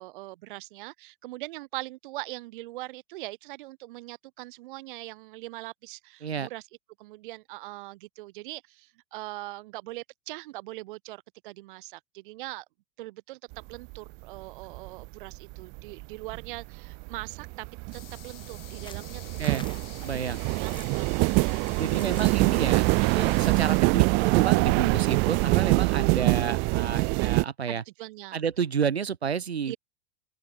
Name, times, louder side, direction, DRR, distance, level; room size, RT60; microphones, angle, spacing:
voice 1, 0.0-6.7 7.0-12.7 13.0-13.4 13.7-17.7 17.9-19.6 20.0-21.8 27.7-28.4 29.7-29.8, right 19 dB, 55° right, 0.9 m, -41 dB
sound 1, 13.5-14.0 14.4-27.5, right 30 dB, 35° right, 0.5 m, -25 dB
sound 2, 17.9-23.8, left 13 dB, 65° left, 1.7 m, -49 dB
sound 3, 18.8-23.7, left 5 dB, 15° left, 5.8 m, -49 dB
voice 2, 20.0-20.4 21.8-27.8 28.3-29.8, right 7 dB, 85° right, 1.6 m, -30 dB
open air
hypercardioid pair, 95°, 31 cm